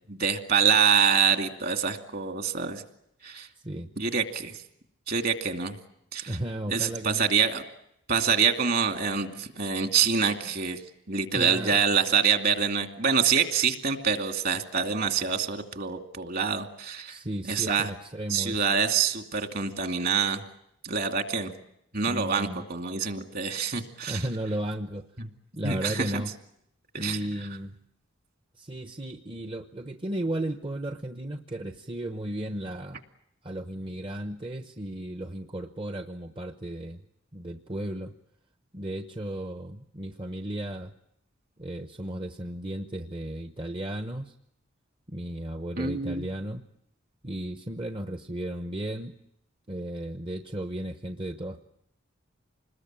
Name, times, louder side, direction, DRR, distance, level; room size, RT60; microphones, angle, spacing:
voice 1, 0.1-2.8 3.2-3.5 4.0-4.6 5.1-5.8 6.1-6.4 6.7-7.7 8.1-10.8 11.1-17.2 17.4-17.9 18.3-20.4 20.8-21.5 21.9-24.3 25.2-25.3 25.6-26.2 26.9-27.3 45.8-46.3, right 6 dB, 50° right, 7 dB, 2.5 m, -26 dB
voice 2, 6.3-7.3 11.3-11.8 17.1-18.7 22.1-22.6 24.1-25.1 25.5-26.3 27.0-27.8 28.6-33.0 33.4-37.0 37.3-38.1 38.7-40.9 41.6-44.3 45.1-46.6 47.2-49.1 49.7-51.6, right 1 dB, 25° right, 9 dB, 0.9 m, -34 dB
27.0 x 20.5 x 9.0 m, 0.78 s
head